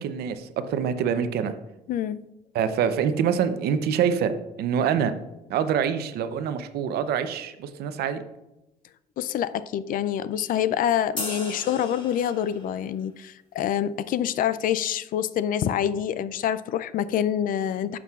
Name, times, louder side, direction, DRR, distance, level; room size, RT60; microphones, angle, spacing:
voice 1, 0.0-1.6 2.5-4.3 4.6-5.1 5.5-8.2, right 8 dB, 70° right, 10 dB, 0.7 m, -25 dB
voice 2, 1.9-2.3 9.2-18.0, left 10 dB, 55° left, 15 dB, 0.4 m, -26 dB
sound 1, 11.2-12.8, left 2 dB, 30° left, 2.1 m, -36 dB
11.0 x 6.1 x 2.4 m, 0.96 s
cardioid pair, 110°, 17 cm